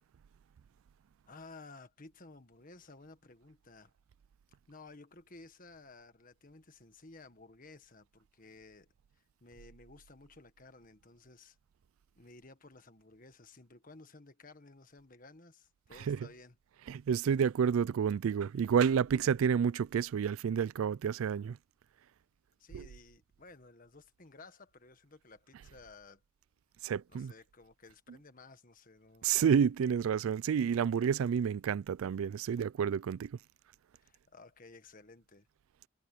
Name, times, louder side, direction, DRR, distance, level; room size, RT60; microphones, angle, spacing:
voice 1, 1.3-3.9 4.7-11.6 12.2-16.6 22.6-26.2 26.8-29.3 34.0-35.5, left 3 dB, 40° left, 1.5 m, -55 dB
voice 2, 16.9-21.6 22.7-22.8 26.8-27.3 29.2-33.3, right 7 dB, 75° right, 0.3 m, -29 dB
head